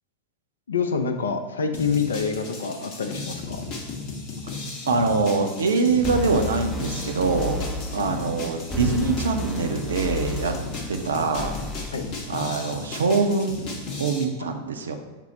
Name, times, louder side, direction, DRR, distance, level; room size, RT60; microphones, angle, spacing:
voice 1, 0.7-3.6 11.9-12.0 14.4-14.5, left 5 dB, 70° left, 7 dB, 0.4 m, -26 dB
sound 1, 1.7-14.2, left 3 dB, 40° left, 0.7 m, -36 dB
voice 2, 4.9-7.6 7.9-10.5 10.9-11.6 12.3-13.7 14.0-15.0, right 4 dB, 70° right, 5 dB, 0.4 m, -24 dB
sound 2, 6.0-11.9, left 1 dB, 10° left, 0.4 m, -32 dB
5.8 x 2.0 x 4.2 m, 1.2 s
figure-of-eight pair, 90°, 0 cm